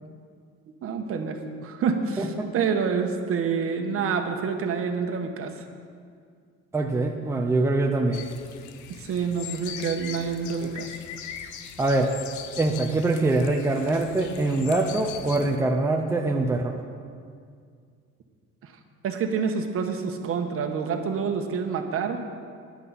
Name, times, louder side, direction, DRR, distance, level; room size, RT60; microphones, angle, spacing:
voice 1, 0.8-5.6 8.9-10.9 18.6-18.7 19.0-22.2, right 6 dB, 50° right, 5 dB, 1.2 m, -27 dB
voice 2, 2.2-2.5 6.7-8.2 10.6-10.7 11.8-12.1 12.6-16.8, right 2 dB, 10° right, 2 dB, 0.7 m, -24 dB
sound 1, 8.1-15.6, left 9 dB, 75° left, 0.8 m, -40 dB
14.5 x 11.0 x 4.2 m, 2.1 s
cardioid pair, 140°, 29 cm